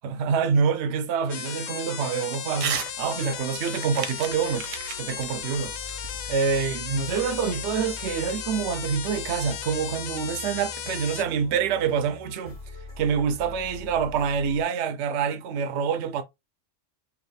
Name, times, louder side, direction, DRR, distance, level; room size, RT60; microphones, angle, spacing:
voice 1, 0.0-4.7 5.0-5.7 6.3-12.5 13.0-16.2, right 6 dB, 65° right, 0.9 m, -26 dB
sound 1, 1.3-11.2, left 9 dB, 65° left, 0.9 m, -35 dB
Crumpling crinkling / Tearing, 2.5-2.9 3.3-6.6, right 7 dB, 85° right, 1.2 m, -34 dB
sound 2, 4.3-14.6, left 3 dB, 35° left, 1.9 m, -43 dB
4.9 x 2.5 x 3.2 m
omnidirectional pair, 1.3 m